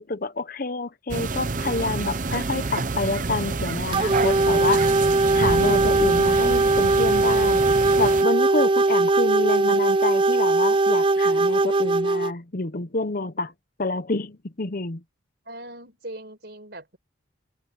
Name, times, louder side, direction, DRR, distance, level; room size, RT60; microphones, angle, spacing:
voice 1, 0.0-4.9 5.3-7.6 8.0-13.5 13.8-15.0, left 3 dB, 50° left, 0.9 m, -28 dB
sound 1, 1.1-8.2, right 3 dB, 45° right, 0.7 m, -28 dB
sound 2, 3.9-12.3, right 3 dB, 25° right, 0.4 m, -20 dB
voice 2, 15.5-17.0, right 1 dB, 60° right, 4.9 m, -41 dB
head